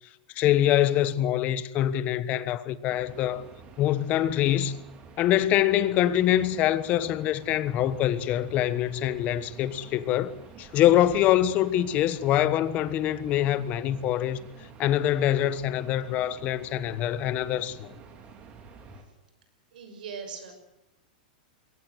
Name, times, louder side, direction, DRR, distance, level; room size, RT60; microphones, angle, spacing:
voice 1, 0.3-3.4 3.8-4.8 5.2-14.4 14.8-17.9, left 12 dB, 35° left, 1.3 m, -24 dB
sound 1, 2.9-19.0, right 5 dB, 25° right, 3.5 m, -49 dB
voice 2, 19.7-20.5, right 6 dB, 75° right, 6.3 m, -39 dB
22.5 x 18.0 x 8.0 m
supercardioid pair, 145°, 5 cm